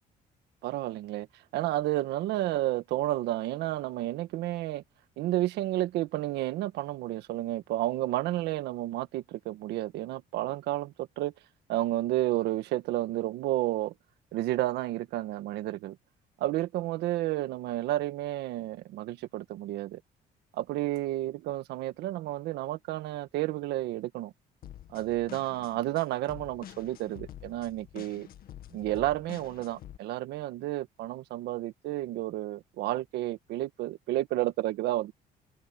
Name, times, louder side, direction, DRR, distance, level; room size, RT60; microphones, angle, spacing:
voice 1, 0.6-1.3 1.5-4.8 5.2-11.3 11.7-13.9 14.3-16.0 16.4-20.0 20.6-24.3 24.9-28.3 28.7-35.1, right 15 dB, 85° right, 1.6 m, -31 dB
sound 1, 24.6-30.0, left 11 dB, 60° left, 2.0 m, -48 dB
cardioid pair, 110°, 17 cm